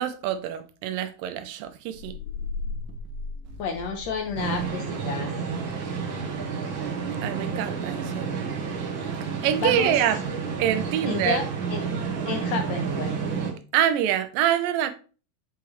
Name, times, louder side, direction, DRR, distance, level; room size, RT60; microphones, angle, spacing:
voice 1, 0.0-2.2 7.2-8.3 9.2-10.2 10.6-11.4 13.7-14.9, right 10 dB, 90° right, 2.5 m, -25 dB
sound 1, 1.9-4.3, left 4 dB, 90° left, 3.5 m, -35 dB
sound 2, 3.4-4.7, left 1 dB, 75° right, 1.7 m, -45 dB
voice 2, 3.6-5.3 9.6-10.0 11.0-11.4 11.7-11.8 12.3-13.1, left 5 dB, 70° left, 1.8 m, -30 dB
sound 3, 4.4-13.5, right 5 dB, 60° right, 1.3 m, -30 dB
8.1 x 4.7 x 3.1 m
omnidirectional pair, 3.8 m